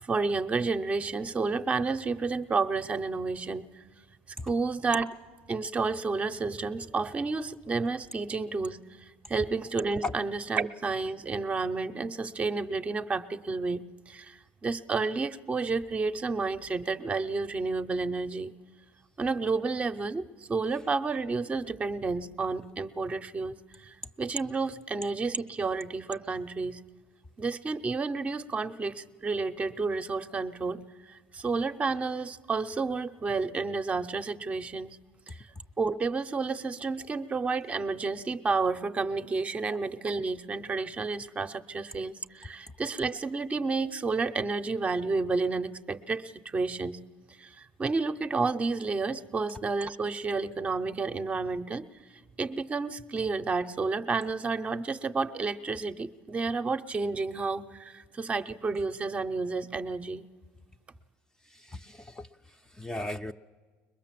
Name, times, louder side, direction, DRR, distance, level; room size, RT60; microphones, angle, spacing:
voice 1, 0.0-3.7 4.4-5.1 5.5-8.8 9.3-18.6 19.2-26.8 27.4-35.0 35.3-35.4 35.8-47.0 47.4-51.8 52.4-60.2, right 4 dB, 25° right, 10 dB, 0.7 m, -31 dB
voice 2, 61.4-63.3, left 2 dB, 10° left, 8 dB, 0.6 m, -38 dB
21.5 x 21.5 x 7.6 m, 1.5 s
supercardioid pair, 115°, 5 cm